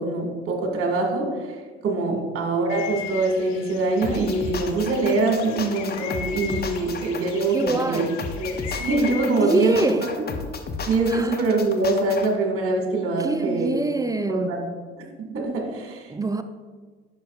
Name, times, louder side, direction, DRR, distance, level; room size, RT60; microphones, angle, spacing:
voice 1, 0.0-1.5 1.8-8.0 8.4-9.8 10.2-10.3 10.9-13.7 14.3-14.7 15.2-16.1, right 2 dB, 45° right, 1.8 m, -24 dB
sound 1, 2.7-9.8, left 8 dB, 65° left, 0.9 m, -38 dB
sound 2, 4.0-12.3, left 4 dB, 30° left, 0.8 m, -34 dB
voice 2, 7.5-8.2 9.3-10.2 11.1-11.3 13.2-14.6 16.1-16.4, right 2 dB, 10° right, 0.5 m, -25 dB
10.5 x 6.0 x 2.4 m
hypercardioid pair, 60°, 30 cm